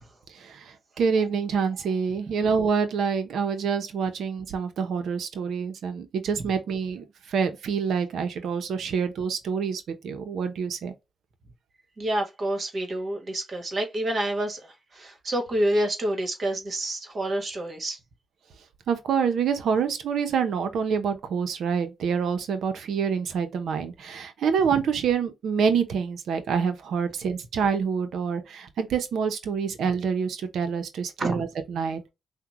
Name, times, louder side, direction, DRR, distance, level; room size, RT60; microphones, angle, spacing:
voice 1, 1.0-10.9 18.9-32.1, right 6 dB, 75° right, 0.7 m, -27 dB
voice 2, 12.0-18.0 31.2-31.4, right 1 dB, 50° right, 1.4 m, -28 dB
5.7 x 2.1 x 2.9 m
cardioid pair, 65°, 0 cm